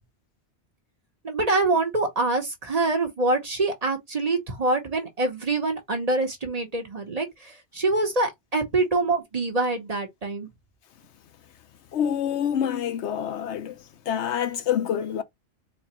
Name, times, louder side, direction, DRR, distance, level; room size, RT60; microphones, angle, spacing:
voice 1, 1.2-10.5, right 2 dB, 35° right, 1.0 m, -25 dB
voice 2, 11.9-13.8 14.1-15.2, left 9 dB, 85° left, 1.0 m, -26 dB
4.1 x 2.5 x 2.9 m
omnidirectional pair, 1.1 m